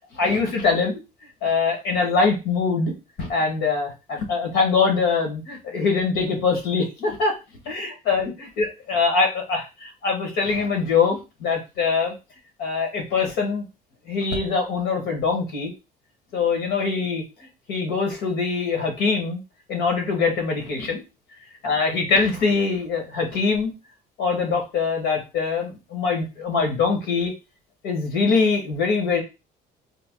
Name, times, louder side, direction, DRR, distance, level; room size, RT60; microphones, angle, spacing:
voice 1, 0.2-1.0 1.4-7.3 7.7-12.1 12.6-13.7 14.1-15.7 16.3-17.2 17.7-19.4 19.7-21.0 21.6-23.7 24.2-27.3 27.8-29.2, left 4 dB, 90° left, 3 dB, 1.8 m, -23 dB
4.0 x 2.3 x 3.8 m, 0.27 s
cardioid pair, 110°, 17 cm